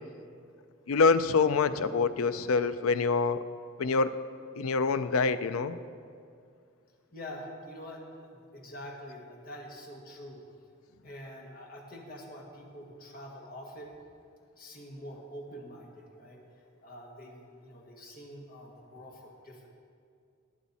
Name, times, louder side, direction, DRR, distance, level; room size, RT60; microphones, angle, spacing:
voice 1, 0.9-3.4 3.8-4.2 4.6-5.8, left 4 dB, 90° left, 12 dB, 0.5 m, -26 dB
voice 2, 7.1-10.4 11.0-13.9 14.6-16.4 16.8-19.7, equal, 45° left, -1 dB, 1.9 m, -45 dB
18.5 x 8.2 x 4.2 m, 2.3 s
head